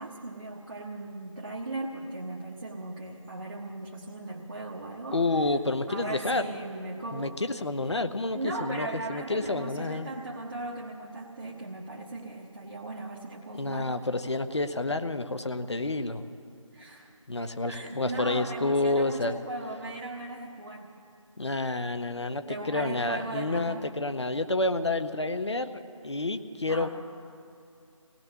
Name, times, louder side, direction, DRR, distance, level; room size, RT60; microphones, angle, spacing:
voice 1, 0.0-5.2 5.9-7.4 8.3-14.0 16.7-17.2 17.6-20.9 22.5-23.9 26.7-26.9, right 2 dB, 40° right, -3 dB, 1.1 m, -38 dB
voice 2, 5.1-6.4 7.1-10.1 13.5-16.3 17.3-19.4 21.4-26.9, left 2 dB, 55° left, 9 dB, 0.8 m, -29 dB
26.5 x 18.0 x 2.7 m, 2.5 s
figure-of-eight pair, 160°, 17 cm